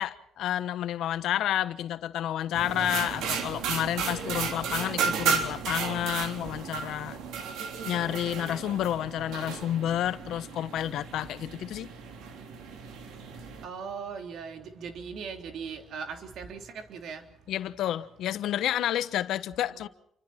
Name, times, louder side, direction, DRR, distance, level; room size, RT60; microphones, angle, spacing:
voice 1, 0.0-7.2 7.8-11.9 17.5-19.9, left 12 dB, 80° left, 1.1 m, -30 dB
sound 1, 2.5-13.6, right 6 dB, 90° right, 3.5 m, -34 dB
voice 2, 13.6-17.3 19.6-19.9, right 6 dB, 75° right, 3.4 m, -39 dB
29.5 x 25.0 x 4.4 m
cardioid pair, 90°, 0 cm